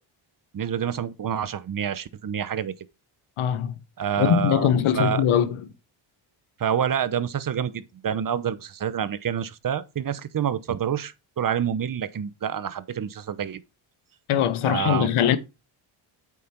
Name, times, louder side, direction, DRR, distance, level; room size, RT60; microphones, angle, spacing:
voice 1, 0.5-2.7 4.0-4.7 4.9-5.2 6.6-13.6 14.6-15.2, right 8 dB, 40° right, 0.9 m, -27 dB
voice 2, 3.4-3.8 4.2-5.7 14.3-15.4, left 9 dB, 80° left, 1.2 m, -21 dB
8.4 x 5.3 x 4.4 m
cardioid pair, 80°, 50 cm